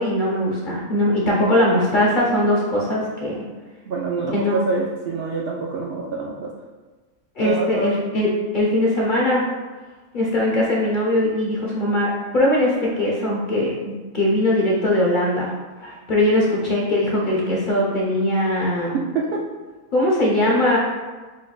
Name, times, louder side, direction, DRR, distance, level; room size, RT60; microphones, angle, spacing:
voice 1, 0.0-3.4 4.3-4.6 7.4-8.3 8.5-9.4 10.1-15.5 15.8-18.9 19.9-20.8, left 1 dB, 40° left, -4 dB, 0.8 m, -20 dB
voice 2, 3.9-6.5 7.4-8.0 18.9-19.4, right 3 dB, 65° right, -3 dB, 0.6 m, -25 dB
6.4 x 3.2 x 2.4 m, 1.3 s
omnidirectional pair, 1.5 m